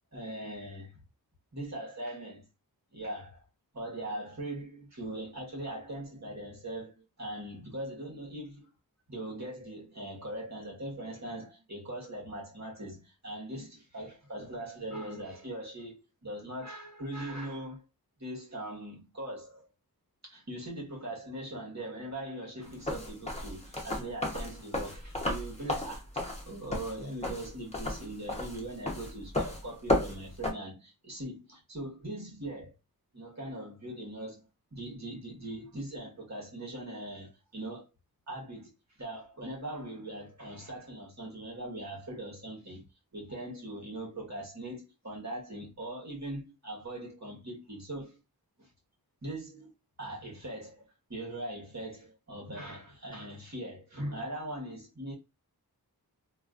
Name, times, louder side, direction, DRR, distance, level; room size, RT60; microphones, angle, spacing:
voice 1, 0.1-1.0 1.5-2.4 2.9-3.4 3.7-8.7 9.1-17.8 18.2-19.6 20.2-32.7 33.1-34.4 34.7-37.8 38.3-38.7 39.0-42.8 43.1-48.2 48.6-48.7 49.2-49.7 50.0-50.8 51.1-55.1, right 1 dB, 45° right, 1.5 m, -41 dB
sound 1, 22.7-30.5, left 1 dB, 15° left, 1.0 m, -33 dB
3.1 x 2.6 x 2.5 m
wide cardioid pair, 50°, 38 cm